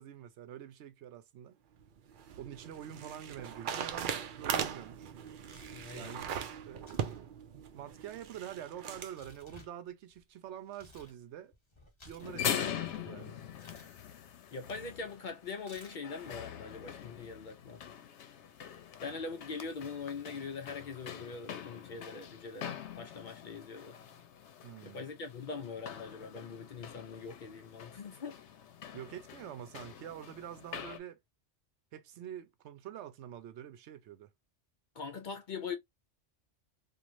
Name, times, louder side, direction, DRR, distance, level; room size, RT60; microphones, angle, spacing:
voice 1, 0.0-1.6 2.4-5.1 5.9-6.3 6.7-7.3 7.7-11.5 12.0-13.4 24.6-25.0 28.9-31.2 31.9-34.3, right 10 dB, 80° right, 0.9 m, -46 dB
sound 1, 1.8-9.1, right 8 dB, 60° right, 0.6 m, -39 dB
Tearing, 5.4-6.0 6.7-7.2 7.5-11.2 11.5-13.0 13.5-13.9 15.6-16.2, left 2 dB, 25° left, 1.0 m, -58 dB
voice 2, 5.7-6.2 14.5-17.8 19.0-24.0 24.8-28.4 35.0-35.8, left 5 dB, 55° left, 0.6 m, -42 dB
sound 2, 12.2-31.0, left 9 dB, 85° left, 0.9 m, -43 dB
3.0 x 2.5 x 2.5 m
omnidirectional pair, 1.2 m